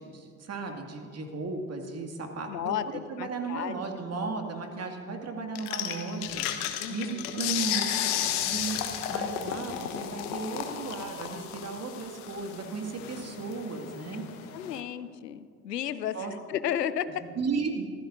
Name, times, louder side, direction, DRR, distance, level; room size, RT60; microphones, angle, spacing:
voice 1, 0.0-2.7 3.1-6.5 6.9-7.8 8.4-14.5 16.1-16.3 17.4-17.9, right 4 dB, 30° right, 3 dB, 2.2 m, -35 dB
voice 2, 2.5-3.7 6.8-7.3 14.5-16.2 16.5-17.2, left 10 dB, 85° left, 14 dB, 0.7 m, -33 dB
sound 1, 5.6-14.8, left 10 dB, 65° left, 1.3 m, -33 dB
24.0 x 15.5 x 2.6 m, 2.2 s
figure-of-eight pair, 60°, 47 cm